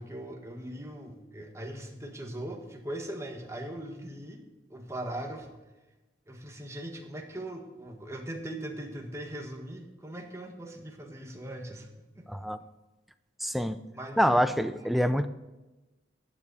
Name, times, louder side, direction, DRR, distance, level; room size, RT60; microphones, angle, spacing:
voice 1, 0.0-4.4 4.7-5.5 6.3-11.9 12.1-12.3 13.9-14.2 14.8-15.1, right 1 dB, 15° right, 3 dB, 1.6 m, -40 dB
voice 2, 12.3-12.6 13.4-13.8 14.2-15.3, equal, ahead, 10 dB, 0.5 m, -26 dB
14.5 x 9.7 x 4.2 m, 1.1 s
head